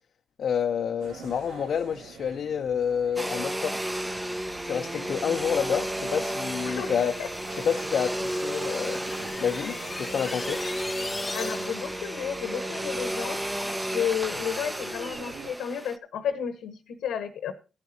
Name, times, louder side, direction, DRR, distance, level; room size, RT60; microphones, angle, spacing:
voice 1, 0.4-3.8 4.6-7.2 7.5-9.0 9.4-10.6, left 7 dB, 70° left, 0.7 m, -28 dB
sound 1, 1.0-15.5, right 5 dB, 85° right, 1.7 m, -45 dB
Domestic sounds home sounds, 3.2-16.0, right 1 dB, 15° right, 0.9 m, -33 dB
Knife Party Uplifter, 6.1-12.0, left 2 dB, 25° left, 0.9 m, -40 dB
voice 2, 6.6-7.3 11.3-13.4 13.9-17.5, left 8 dB, 85° left, 1.1 m, -32 dB
16.0 x 11.0 x 2.7 m
supercardioid pair, 55°, 0 cm